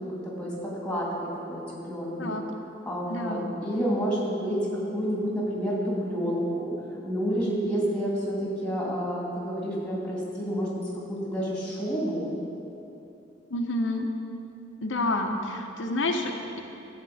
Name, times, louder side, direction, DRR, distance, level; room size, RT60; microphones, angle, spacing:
voice 1, 0.0-2.3 2.9-6.7 7.0-12.3, equal, 5° left, -5 dB, 2.2 m, -29 dB
voice 2, 3.1-3.5 13.5-14.1 14.8-16.6, left 2 dB, 80° left, 3 dB, 0.9 m, -29 dB
13.0 x 4.5 x 7.7 m, 2.8 s
head